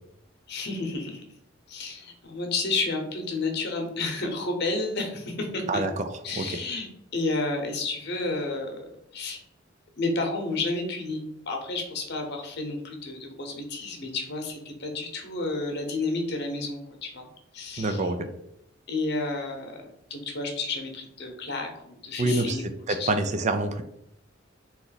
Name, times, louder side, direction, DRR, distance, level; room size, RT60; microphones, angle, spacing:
voice 1, 0.5-1.2 1.7-5.8 6.2-8.8 9.1-9.4 10.0-17.3 17.5-18.0 18.9-19.8 20.1-22.7 23.0-23.1, left 3 dB, 55° left, 3 dB, 0.9 m, -31 dB
voice 2, 5.7-6.6 17.8-18.3 22.2-23.8, right 2 dB, 35° right, 8 dB, 0.4 m, -27 dB
3.9 x 3.1 x 3.9 m, 0.79 s
head